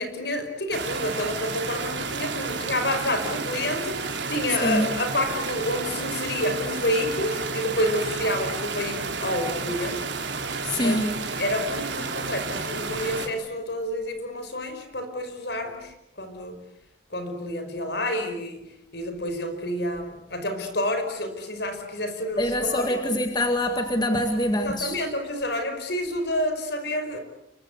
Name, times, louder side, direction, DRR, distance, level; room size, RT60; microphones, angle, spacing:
voice 1, 0.0-10.1 10.8-11.1 11.4-16.6 17.1-18.6 18.9-23.2 24.6-27.2, left 1 dB, 60° left, 7 dB, 5.5 m, -29 dB
sound 1, 0.7-13.3, right 4 dB, 65° right, 3.7 m, -31 dB
voice 2, 10.6-11.2 22.4-25.0, left 1 dB, 20° left, 5 dB, 2.0 m, -24 dB
30.0 x 24.0 x 8.3 m, 0.83 s
head